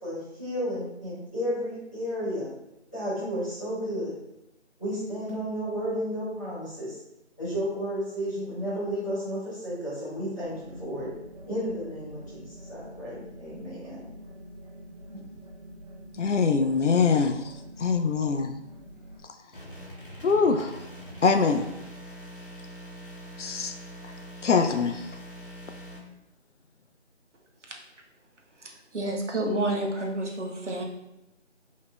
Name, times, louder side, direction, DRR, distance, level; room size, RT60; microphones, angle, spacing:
voice 1, 0.0-2.5 2.9-4.1 4.8-7.0 7.4-11.1 11.4-14.0 15.1-15.2, equal, 15° left, 1.5 m, -32 dB
sound 1, 10.4-19.2, equal, 35° right, 0.9 m, -46 dB
voice 2, 16.2-17.5 17.8-18.5 20.2-20.8 21.2-21.7 23.4-23.7 24.4-25.0, left 5 dB, 80° left, 0.5 m, -23 dB
sound 2, 19.5-26.0, equal, 45° left, 0.9 m, -43 dB
voice 3, 28.6-30.8, right 1 dB, 80° right, 0.9 m, -29 dB
5.0 x 2.8 x 2.2 m
figure-of-eight pair, 175°, 36 cm